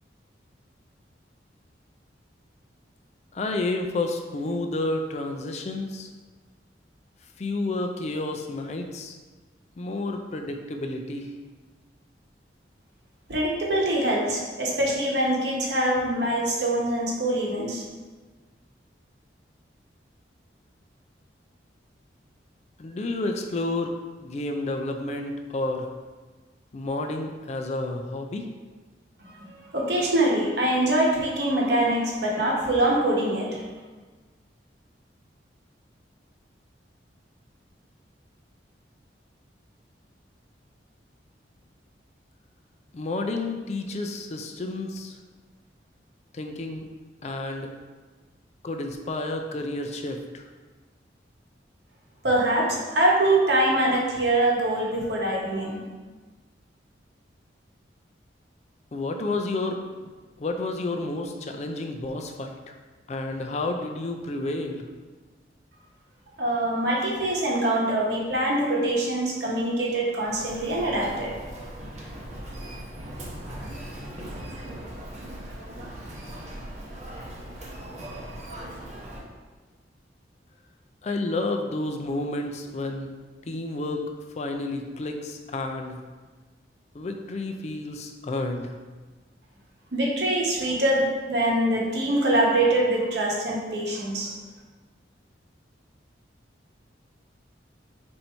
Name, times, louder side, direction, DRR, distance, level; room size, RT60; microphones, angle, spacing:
voice 1, 3.3-6.1 7.4-9.1 9.8-11.3 22.8-23.9 24.2-25.9 26.7-28.5 42.9-45.1 46.3-46.8 47.2-47.7 48.6-50.5 58.9-60.1 60.4-62.8 63.1-64.9 81.0-83.1 83.5-84.0 84.4-86.0 86.9-88.7, left 2 dB, 35° left, 4 dB, 0.4 m, -30 dB
voice 2, 13.3-17.8 29.3-33.7 52.2-55.8 66.4-71.3 89.9-94.4, right 1 dB, 65° right, -3 dB, 1.0 m, -24 dB
Human voice, 70.2-79.2, right 1 dB, 40° right, 0.7 m, -39 dB
4.4 x 2.6 x 4.4 m, 1.3 s
head